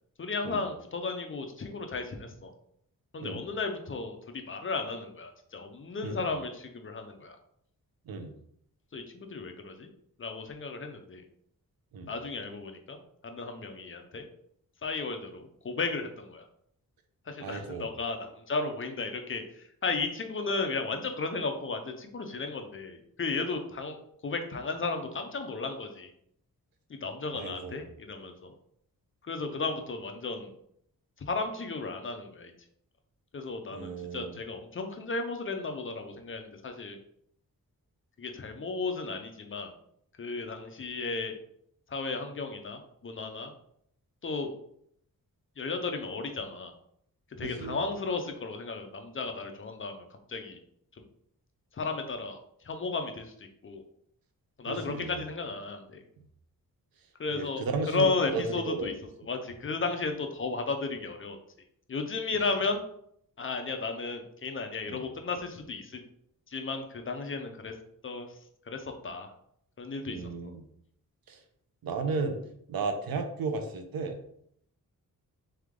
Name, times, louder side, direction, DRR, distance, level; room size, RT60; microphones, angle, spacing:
voice 1, 0.2-2.5 3.1-7.4 8.9-9.9 10.2-11.2 12.1-13.0 13.2-14.3 14.8-16.4 17.3-24.0 24.2-26.1 26.9-28.5 29.2-30.5 31.2-32.5 33.3-37.0 38.2-39.7 40.2-41.3 41.9-43.5 44.2-44.5 45.6-46.7 47.4-50.6 51.0-51.1 51.7-53.8 54.6-56.0 57.2-58.9 59.3-61.4 61.9-62.8 63.4-66.0 66.5-67.8 68.0-68.4 68.7-69.3 69.8-70.3, left 3 dB, 35° left, 5 dB, 0.5 m, -34 dB
voice 2, 17.4-17.9 27.3-27.8 33.7-34.4 47.4-47.8 54.7-55.2 57.3-58.0 58.3-59.0 64.9-65.0 70.1-70.6 71.3-71.4 71.8-72.4 72.7-74.2, right 4 dB, 85° right, 6 dB, 0.7 m, -34 dB
3.7 x 3.3 x 3.6 m, 0.70 s
wide cardioid pair, 165°, 34 cm